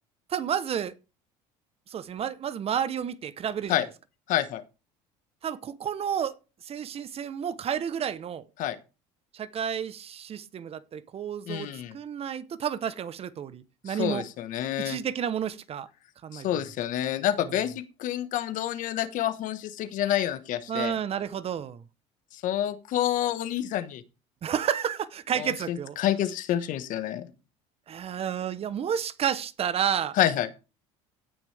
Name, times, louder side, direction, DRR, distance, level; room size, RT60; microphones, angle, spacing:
voice 1, 0.3-0.9 1.9-3.8 5.4-6.3 6.6-8.4 9.3-14.2 14.8-15.9 16.2-16.5 20.7-21.8 24.4-26.0 27.9-30.2, right 8 dB, 40° right, 0.9 m, -31 dB
voice 2, 4.3-4.6 8.6-8.8 11.5-12.0 13.9-15.0 16.3-20.9 22.3-24.0 25.3-27.2 30.1-30.5, left 12 dB, 60° left, 1.4 m, -28 dB
16.5 x 6.1 x 3.4 m
supercardioid pair, 85°, 15 cm